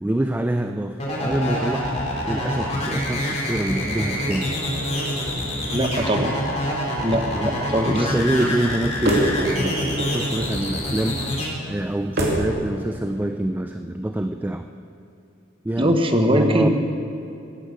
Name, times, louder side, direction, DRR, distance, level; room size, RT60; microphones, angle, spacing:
voice 1, 0.0-4.5 7.3-7.5 7.9-14.7 15.6-16.7, right 1 dB, 10° right, 7 dB, 0.4 m, -26 dB
sound 1, 1.0-11.5, left 1 dB, 35° left, 3.4 m, -26 dB
sound 2, 3.8-12.5, right 1 dB, 55° right, 2.7 m, -30 dB
voice 2, 5.7-6.3 7.0-8.1 15.8-16.7, right 1 dB, 25° right, 5 dB, 1.1 m, -21 dB
16.5 x 10.5 x 6.4 m, 2.8 s
head